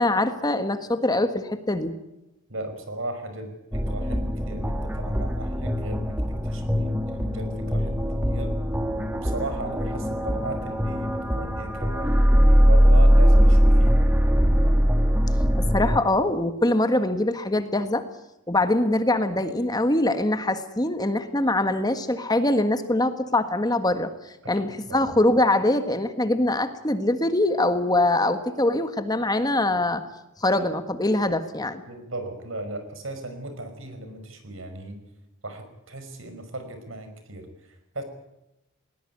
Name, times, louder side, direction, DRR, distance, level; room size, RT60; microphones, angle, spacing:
voice 1, 0.0-1.9 15.6-18.0 18.5-24.1 24.5-30.0 30.4-31.8, left 1 dB, 20° left, 9 dB, 1.5 m, -23 dB
voice 2, 2.5-8.5 9.1-12.1 12.6-14.1 24.4-25.1 31.9-35.0 35.4-38.0, right 2 dB, 75° right, 8 dB, 5.5 m, -37 dB
sound 1, 3.7-16.0, equal, 10° right, 1.6 m, -21 dB
20.5 x 20.0 x 9.6 m, 0.91 s
head